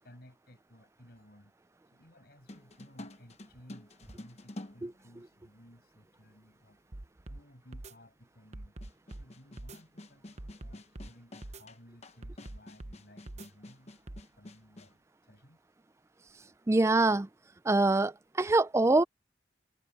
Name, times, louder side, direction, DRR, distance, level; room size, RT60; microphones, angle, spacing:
voice 1, 0.0-1.5 1.9-6.8 7.3-8.7 9.1-14.0 14.4-15.6, equal, 60° left, 6.7 m, -57 dB
sound 1, 2.5-5.7 6.6-6.7 8.8-15.0, left 1 dB, 40° left, 1.1 m, -49 dB
sound 2, 6.9-7.4 7.7-7.9 8.5-9.3 9.6-9.8 10.4-11.1 11.4-11.6 12.2-13.0 13.3-13.5 14.1-14.2, right 1 dB, 40° right, 0.9 m, -44 dB
voice 2, 16.7-17.3 17.7-19.0, right 2 dB, 15° right, 0.4 m, -24 dB
head